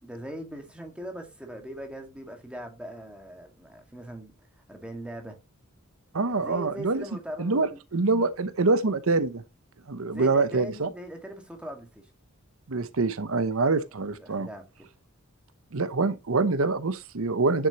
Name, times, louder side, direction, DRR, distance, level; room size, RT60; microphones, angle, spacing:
voice 1, 0.0-5.4 6.3-7.8 10.1-12.1 14.1-14.7, right 1 dB, 5° right, 1.9 m, -40 dB
voice 2, 6.1-7.0 7.4-9.4 9.9-10.9 12.7-14.5 15.7-17.7, right 3 dB, 75° right, 0.8 m, -25 dB
9.6 x 7.4 x 3.0 m
head